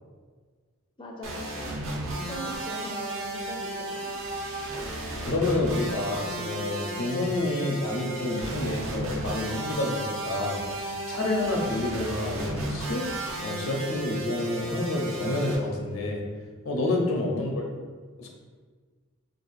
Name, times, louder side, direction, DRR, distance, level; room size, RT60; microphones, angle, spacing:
voice 1, 1.0-1.8 2.2-4.3 17.3-17.5, left 1 dB, 25° left, -1 dB, 0.4 m, -40 dB
sound 1, 1.2-15.6, right 1 dB, 75° right, 0.6 m, -34 dB
voice 2, 4.9-13.1 13.4-16.2 16.6-17.5 18.2-18.3, left 2 dB, 85° left, 0 dB, 0.7 m, -29 dB
2.8 x 2.4 x 4.0 m, 1.5 s
head